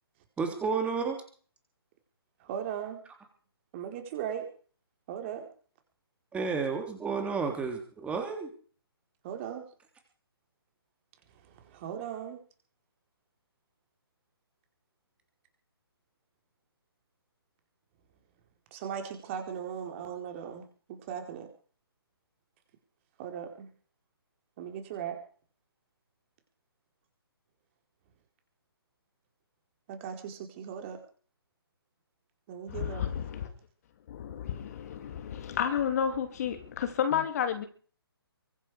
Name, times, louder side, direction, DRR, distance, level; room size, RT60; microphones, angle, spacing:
voice 1, 0.4-1.2 6.3-8.5, right 5 dB, 10° right, 4 dB, 3.4 m, -31 dB
voice 2, 2.5-3.0 3.7-4.4 5.1-5.5 9.2-9.6 11.7-12.4 18.7-21.5 23.2-23.7 24.6-25.2 29.9-31.0 32.5-33.1, right 8 dB, 30° right, 4 dB, 4.6 m, -38 dB
voice 3, 32.7-33.5 34.1-37.6, left 8 dB, 40° left, 8 dB, 3.0 m, -31 dB
24.0 x 11.0 x 5.1 m, 0.43 s
figure-of-eight pair, 140°, 13 cm